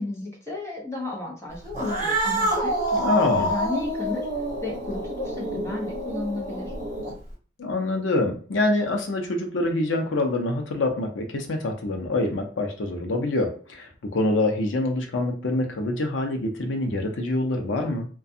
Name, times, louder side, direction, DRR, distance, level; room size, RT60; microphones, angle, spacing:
voice 1, 0.0-4.3 4.6-6.7, left 2 dB, 15° left, -2 dB, 0.7 m, -33 dB
Cat, 1.7-7.3, right 1 dB, 40° right, 0.8 m, -27 dB
voice 2, 3.0-3.5 7.6-18.1, left 2 dB, 85° left, 4 dB, 0.6 m, -25 dB
2.4 x 2.2 x 2.6 m, 0.41 s
head